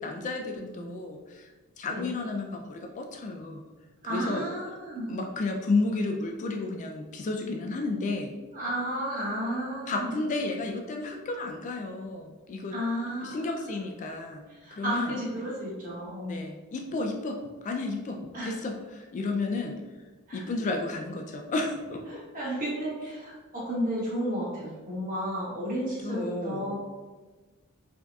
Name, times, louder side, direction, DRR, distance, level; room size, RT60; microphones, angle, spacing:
voice 1, 0.0-3.6 4.1-4.4 5.1-8.3 9.9-12.8 13.2-14.5 14.7-15.1 16.3-19.8 20.3-22.2 26.0-26.8, left 3 dB, 35° left, 3 dB, 0.3 m, -32 dB
voice 2, 0.5-0.9 1.9-2.0 4.0-5.1 8.5-10.1 12.7-13.6 14.6-16.4 18.3-18.5 20.3-20.4 22.3-26.8, equal, 40° right, -7 dB, 1.5 m, -32 dB
4.5 x 2.7 x 2.3 m, 1.3 s
head